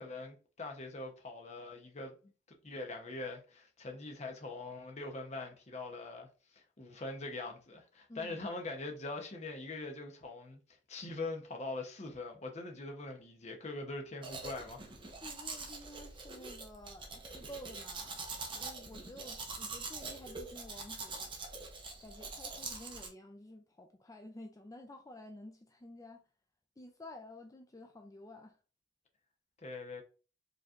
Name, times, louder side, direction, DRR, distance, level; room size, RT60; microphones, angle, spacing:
voice 1, 0.0-2.2 2.6-14.8 29.6-30.0, left 2 dB, 35° left, 0.8 m, -43 dB
Domestic sounds home sounds, 14.2-23.1, right 3 dB, 25° right, 0.8 m, -44 dB
voice 2, 15.2-18.2 18.5-21.3 22.0-26.3 26.8-28.6, left 1 dB, 15° left, 0.4 m, -51 dB
5.0 x 3.2 x 2.5 m
head